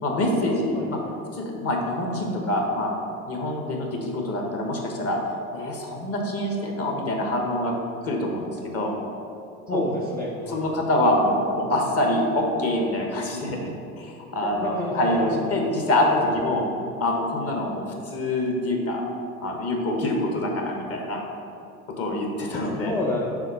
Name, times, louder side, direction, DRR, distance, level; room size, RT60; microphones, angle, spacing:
voice 1, 0.0-1.0 1.3-2.9 3.3-5.2 5.5-7.7 8.0-9.0 9.7-9.8 10.5-16.6 17.0-19.0 19.4-21.2 22.0-22.9, left 1 dB, 30° left, 1 dB, 1.2 m, -25 dB
voice 2, 0.8-1.1 9.7-10.6 14.6-15.1 16.2-16.3 22.7-23.3, left 1 dB, 5° left, -4 dB, 0.5 m, -29 dB
5.0 x 3.8 x 5.3 m, 2.6 s
hypercardioid pair, 80°, 44 cm